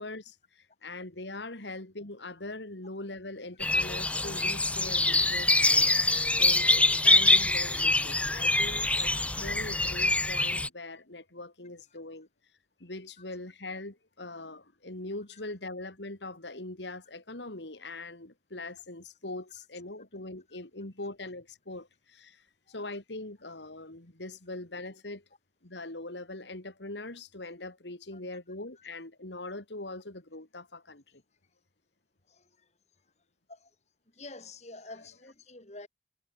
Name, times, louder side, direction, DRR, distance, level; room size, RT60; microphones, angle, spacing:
voice 1, 0.0-12.3 12.8-25.2 25.6-31.2, left 2 dB, 75° left, 3.0 m, -42 dB
sound 1, 3.6-10.7, left 2 dB, 5° left, 0.6 m, -25 dB
voice 2, 32.3-32.7 33.5-33.7 34.1-35.9, left 2 dB, 35° left, 3.2 m, -48 dB
head